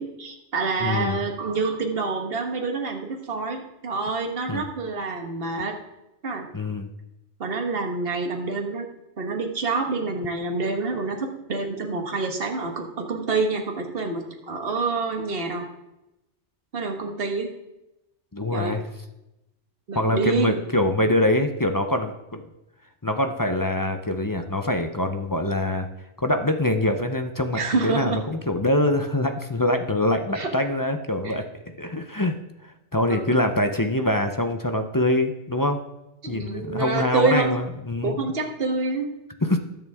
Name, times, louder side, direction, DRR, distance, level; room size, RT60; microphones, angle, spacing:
voice 1, 0.0-5.7 6.2-6.5 7.4-8.9 9.2-15.6 16.7-17.5 18.5-18.8 19.9-20.6 27.5-28.2 30.4-30.5 31.2-31.4 33.1-33.3 36.2-37.6 38.0-39.1, right 4 dB, 55° right, 3 dB, 1.6 m, -27 dB
voice 2, 0.8-1.2 4.5-4.6 6.5-6.9 18.3-18.8 19.9-22.4 23.0-25.9 26.2-31.4 31.8-32.3 32.9-35.8 36.3-38.2 39.4-39.6, left 1 dB, 20° left, 6 dB, 0.6 m, -24 dB
20.5 x 6.9 x 3.6 m, 0.93 s
omnidirectional pair, 1.2 m